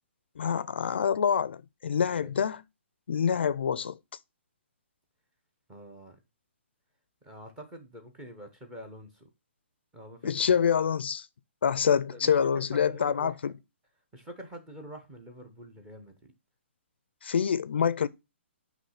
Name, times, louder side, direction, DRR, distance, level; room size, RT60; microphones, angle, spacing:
voice 1, 0.4-2.6 3.1-4.0 10.2-11.3 11.6-13.5 17.2-18.1, left 7 dB, 60° left, 0.4 m, -26 dB
voice 2, 5.7-6.2 7.2-9.3 9.9-10.7 12.1-13.5 14.1-16.3, equal, 10° right, 0.8 m, -46 dB
8.6 x 3.1 x 5.7 m
hypercardioid pair, 175°, 7 cm